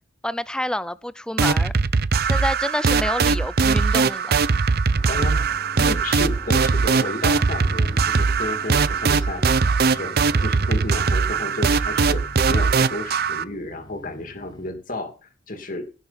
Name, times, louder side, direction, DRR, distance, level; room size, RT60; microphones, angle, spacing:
voice 1, 0.2-1.7 2.2-4.5, left 1 dB, 5° left, 0.4 m, -28 dB
sound 1, 1.4-13.4, right 4 dB, 50° right, 0.6 m, -20 dB
sound 2, 4.9-14.7, left 1 dB, 20° left, 1.6 m, -43 dB
voice 2, 5.1-5.5 5.7-10.1 10.4-15.9, left 1 dB, 45° left, 2.4 m, -32 dB
17.0 x 7.0 x 4.0 m
head